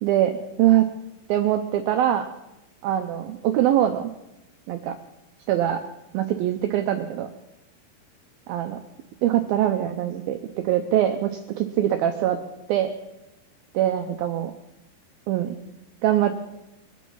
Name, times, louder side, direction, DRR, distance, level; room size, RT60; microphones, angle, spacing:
voice 1, 0.0-0.9 1.3-2.3 2.8-4.1 4.7-5.0 5.5-5.8 6.1-7.3 8.5-8.8 9.2-10.4 10.6-12.4 12.7-12.9 13.7-14.5 15.3-15.6 16.0-16.3, right 12 dB, 85° right, 6 dB, 2.1 m, -23 dB
24.0 x 9.4 x 5.6 m, 0.92 s
omnidirectional pair, 5.3 m